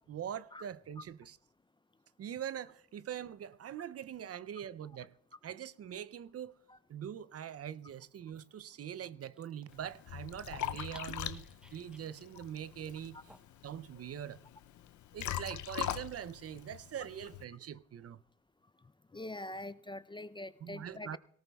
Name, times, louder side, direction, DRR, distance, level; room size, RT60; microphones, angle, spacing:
voice 1, 0.1-1.4 2.2-5.1 5.4-6.5 6.9-11.5 11.7-13.2 13.6-14.4 15.1-18.2 20.6-21.2, right 9 dB, 55° right, 0.5 m, -43 dB
Dog, 7.5-13.7, equal, 5° right, 0.8 m, -63 dB
Liquid, 9.7-17.4, left 12 dB, 80° left, 0.5 m, -42 dB
voice 2, 19.1-21.2, left 1 dB, 15° left, 0.4 m, -44 dB
18.0 x 18.0 x 2.3 m
cardioid pair, 60°, 29 cm